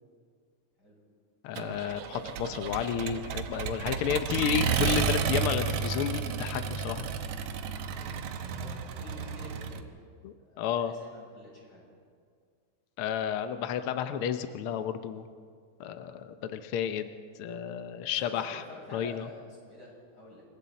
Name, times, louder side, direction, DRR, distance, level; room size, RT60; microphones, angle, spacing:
voice 1, 1.4-7.1 10.2-10.9 13.0-15.3 15.8-17.1 17.4-18.6 18.9-19.2, left 9 dB, 85° left, 9 dB, 1.2 m, -32 dB
Accelerating revving vroom, 1.6-9.8, right 6 dB, 65° right, 1.7 m, -32 dB
voice 2, 8.4-10.0 10.4-11.9 18.2-20.4, left 1 dB, 30° left, -4 dB, 7.1 m, -48 dB
28.0 x 22.5 x 4.1 m, 2.1 s
omnidirectional pair, 3.5 m